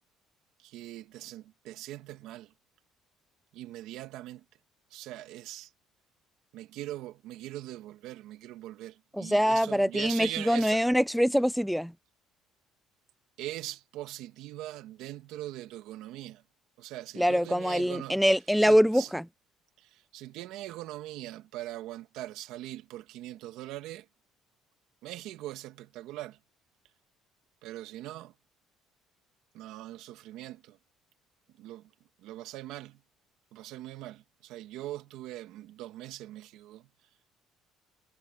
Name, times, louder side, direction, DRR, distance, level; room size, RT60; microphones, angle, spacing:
voice 1, 0.6-2.5 3.5-4.4 4.9-5.7 6.5-10.8 13.4-16.4 16.8-18.2 18.6-19.1 19.8-24.1 25.0-26.4 27.6-28.3 29.5-30.8 31.6-31.9 32.2-33.0 33.5-36.9, right 15 dB, 65° right, 1.6 m, -41 dB
voice 2, 9.1-11.9 17.2-19.3, equal, ahead, 0.3 m, -24 dB
cardioid pair, 175°, 0 cm